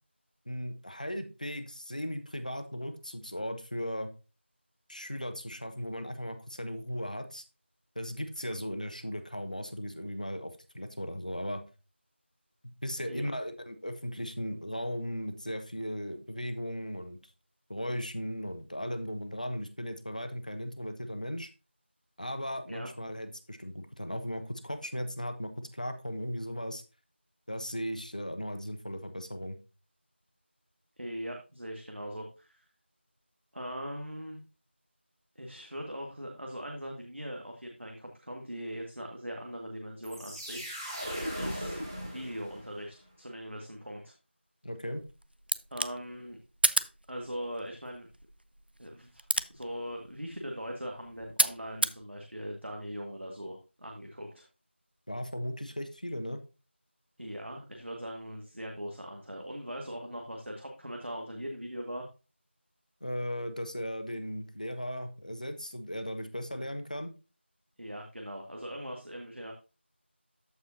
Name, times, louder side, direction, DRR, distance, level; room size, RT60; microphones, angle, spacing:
voice 1, 0.5-4.1 4.9-7.4 7.9-11.6 12.8-17.2 17.7-21.5 22.2-26.8 27.5-29.6 44.6-45.0 55.1-56.4 63.0-67.1, equal, 40° left, 8 dB, 1.1 m, -37 dB
voice 2, 31.0-32.6 33.5-34.4 35.4-40.7 41.4-44.1 45.7-46.4 47.1-48.1 48.8-49.2 49.5-54.5 57.2-62.1 66.5-66.7 67.8-69.5, equal, 75° right, 1 dB, 1.8 m, -40 dB
sound 1, 40.0-42.8, equal, 15° right, 1.5 m, -38 dB
sound 2, 44.9-52.0, right 1 dB, 55° right, 0.5 m, -34 dB
14.0 x 4.8 x 2.7 m, 0.31 s
figure-of-eight pair, 180°, 7 cm